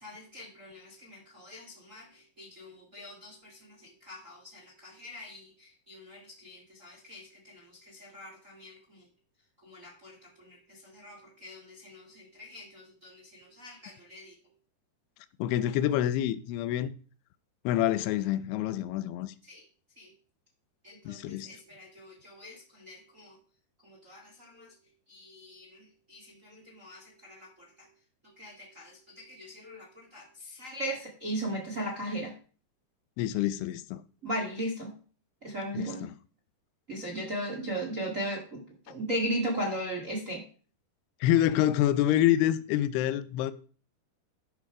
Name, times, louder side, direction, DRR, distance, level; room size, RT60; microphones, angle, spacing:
voice 1, 0.0-3.7 4.0-9.0 9.6-10.6 10.8-14.3 19.5-19.6 20.0-20.1 20.8-23.3 23.8-24.7 25.1-25.7 26.1-27.5 28.4-32.3 34.2-34.9 35.4-36.1 36.9-38.6 38.9-40.4, right 1 dB, 45° right, 1.0 m, -38 dB
voice 2, 15.4-16.9 17.7-19.3 21.1-21.5 33.2-34.0 35.7-36.1 41.2-43.5, left 12 dB, 85° left, 2.6 m, -27 dB
12.0 x 5.9 x 4.8 m
omnidirectional pair, 4.7 m